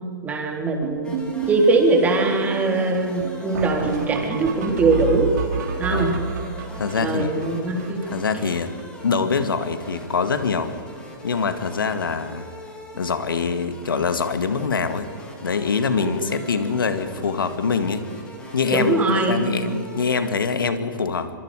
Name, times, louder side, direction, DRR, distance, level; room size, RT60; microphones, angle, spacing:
voice 1, 0.2-1.1 1.5-5.3 5.8-6.1 7.0-8.0 16.0-16.1 18.7-19.7, right 3 dB, 15° right, 2 dB, 3.5 m, -21 dB
sound 1, 0.8-9.0 9.3-9.4 9.6-9.9 10.1-10.7 11.0-11.2 12.0-12.1 12.6-12.7 12.9-13.1 15.4-15.5 17.8-17.9, right 6 dB, 55° right, 4.3 m, -31 dB
sound 2, 1.0-20.2, left 1 dB, 10° left, 4.1 m, -43 dB
voice 2, 6.8-7.3 8.1-8.7 9.0-10.7 11.2-12.5 13.0-15.1 15.4-18.1 18.5-18.9 19.3-21.3, left 5 dB, 80° left, 9 dB, 2.1 m, -24 dB
26.5 x 23.5 x 5.0 m, 2.3 s
hypercardioid pair, 130°, 11 cm